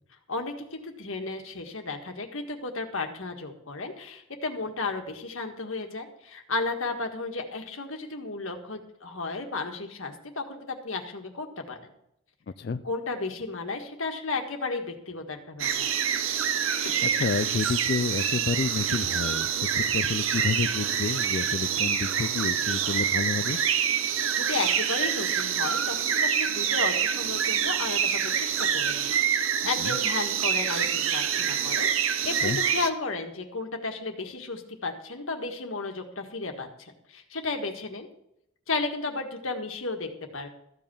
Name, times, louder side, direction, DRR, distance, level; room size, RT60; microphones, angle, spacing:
voice 1, 0.3-11.9 12.8-15.9 16.9-17.1 24.0-38.1 38.7-40.5, left 3 dB, 80° left, 4 dB, 1.6 m, -34 dB
sound 1, 15.6-32.9, right 8 dB, 75° right, 0.9 m, -26 dB
voice 2, 17.1-23.6 29.8-30.0 32.4-32.6, left 4 dB, 50° left, 12 dB, 0.4 m, -30 dB
14.0 x 5.4 x 8.6 m, 0.79 s
head